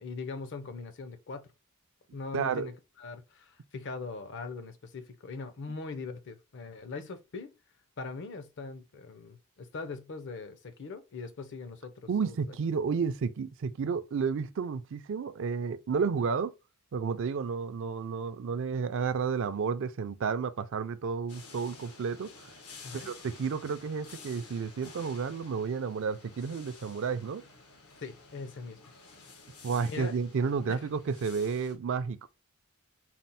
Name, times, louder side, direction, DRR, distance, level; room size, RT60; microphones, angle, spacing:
voice 1, 0.0-1.5 2.1-2.7 3.0-7.5 8.0-12.6 16.2-16.3 22.8-23.1 28.0-28.8 29.9-30.1 30.7-30.8, left 4 dB, 55° left, 0.6 m, -41 dB
voice 2, 2.3-2.7 12.1-16.5 16.9-22.5 22.9-27.4 29.6-32.3, right 5 dB, 60° right, 0.4 m, -31 dB
sound 1, 21.3-31.8, left 4 dB, 80° left, 1.0 m, -52 dB
4.2 x 2.0 x 4.0 m
head